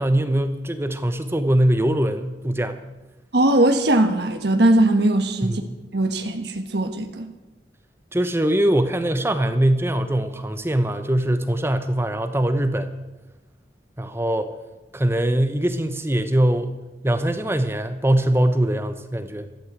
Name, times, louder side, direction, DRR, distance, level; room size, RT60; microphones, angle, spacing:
voice 1, 0.0-2.8 5.4-5.8 8.1-12.9 14.0-14.5 14.9-16.8 17.0-19.5, right 1 dB, 15° right, 0.9 m, -22 dB
voice 2, 3.3-5.6 5.9-7.3, right 1 dB, 65° right, 1.3 m, -19 dB
13.0 x 13.0 x 8.1 m
head